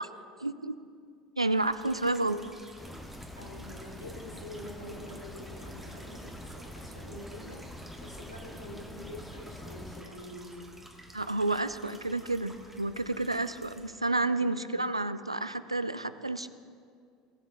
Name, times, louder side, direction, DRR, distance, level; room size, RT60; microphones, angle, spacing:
voice 1, 0.4-0.8 1.4-2.4 11.1-16.5, right 2 dB, 90° right, 13 dB, 0.3 m, -30 dB
sound 1, 1.5-13.9, right 2 dB, 10° right, 1.4 m, -53 dB
sound 2, 2.8-10.0, left 1 dB, 5° left, 0.9 m, -45 dB
voice 2, 3.4-10.7 14.3-14.8, left 1 dB, 90° left, -2 dB, 1.6 m, -46 dB
19.0 x 7.5 x 2.6 m, 2.2 s
figure-of-eight pair, 70°, 3 cm